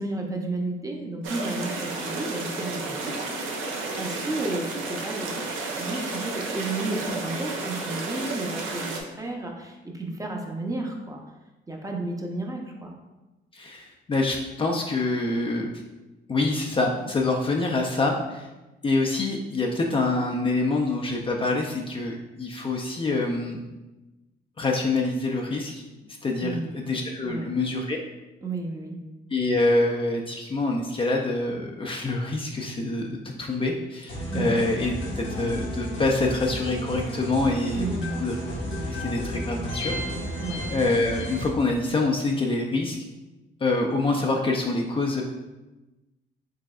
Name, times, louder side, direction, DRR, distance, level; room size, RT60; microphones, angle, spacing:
voice 1, 0.0-3.1 4.0-11.2 11.7-12.9 26.4-26.9 27.2-27.5 28.4-29.0 34.3-34.5 37.7-38.1 40.4-40.7, right 2 dB, 15° right, 1 dB, 0.6 m, -32 dB
sound 1, 1.2-9.0, right 3 dB, 80° right, 0.7 m, -32 dB
voice 2, 13.5-15.7 16.3-18.5 18.8-23.6 24.6-25.8 26.2-28.0 29.3-37.9 38.2-38.4 38.8-40.0 40.3-40.4 40.7-43.0 43.6-45.2, left 2 dB, 25° left, 0 dB, 0.4 m, -26 dB
sound 2, 34.1-41.5, equal, 85° left, 1.4 m, -32 dB
4.8 x 3.3 x 2.4 m, 1.1 s
cardioid pair, 90°, 20 cm